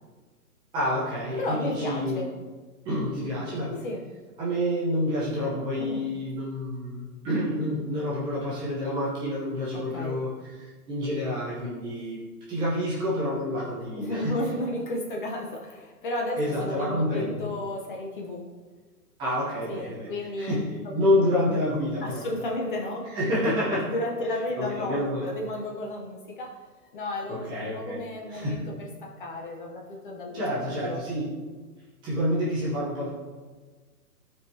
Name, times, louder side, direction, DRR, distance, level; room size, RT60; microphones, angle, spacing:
voice 1, 0.7-2.3 2.8-3.7 4.4-12.2 12.5-14.4 16.4-17.4 19.2-20.1 20.4-22.3 23.1-23.9 24.6-25.3 27.3-28.0 28.3-28.6 30.3-31.3 32.0-33.1, left 1 dB, 10° right, -8 dB, 0.8 m, -28 dB
voice 2, 1.4-2.3 3.7-4.0 5.8-6.1 9.7-10.2 14.0-18.5 19.7-20.6 22.0-23.1 23.5-26.6 26.9-31.0, left 1 dB, 30° left, 0 dB, 0.8 m, -33 dB
12.5 x 4.6 x 2.8 m, 1.4 s
hypercardioid pair, 155°, 48 cm